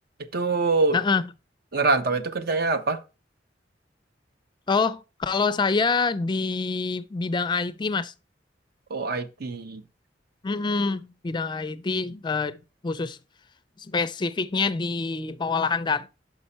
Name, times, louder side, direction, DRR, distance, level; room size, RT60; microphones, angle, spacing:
voice 1, 0.2-1.0 1.7-3.0 8.9-9.8, right 3 dB, 60° right, 0.7 m, -24 dB
voice 2, 4.7-8.1 10.4-12.6 12.8-13.2 13.8-16.1, left 4 dB, 25° left, 0.4 m, -26 dB
5.8 x 5.5 x 4.2 m
head